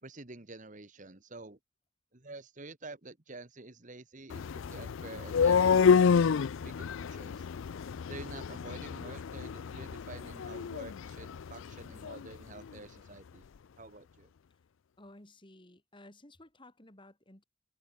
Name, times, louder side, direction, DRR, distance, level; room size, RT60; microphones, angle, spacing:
voice 1, 0.0-1.6 2.1-7.5 8.1-13.4 13.8-14.3, right 2 dB, 40° right, 1.5 m, -49 dB
sound 1, 4.3-12.3, left 6 dB, 70° left, 0.4 m, -29 dB
voice 2, 15.0-17.4, left 1 dB, 25° left, 2.9 m, -55 dB
head